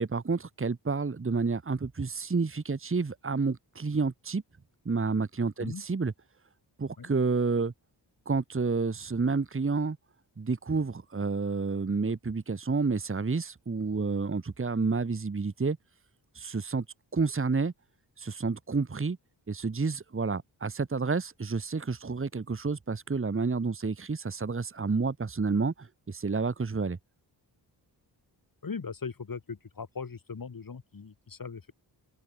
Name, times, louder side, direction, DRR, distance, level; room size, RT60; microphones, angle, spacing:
voice 1, 0.0-4.4 4.8-6.1 6.8-7.7 8.2-10.0 10.4-15.8 16.3-16.8 17.1-17.7 18.2-19.2 19.5-27.0, right 4 dB, 30° right, 1.8 m, -29 dB
voice 2, 28.6-31.7, left 5 dB, 50° left, 5.4 m, -39 dB
open air
wide cardioid pair, 105°, 44 cm